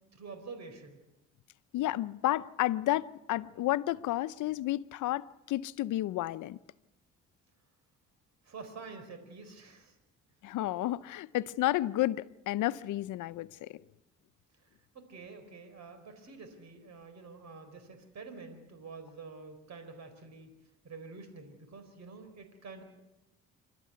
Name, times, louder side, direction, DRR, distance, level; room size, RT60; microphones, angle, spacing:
voice 1, 0.1-1.0 8.4-9.9 14.9-20.5 20.8-22.8, right 4 dB, 60° right, 4.4 m, -48 dB
voice 2, 1.7-6.6 10.4-13.8, left 15 dB, 80° left, 0.7 m, -31 dB
27.5 x 12.5 x 9.5 m
cardioid pair, 90°, 30 cm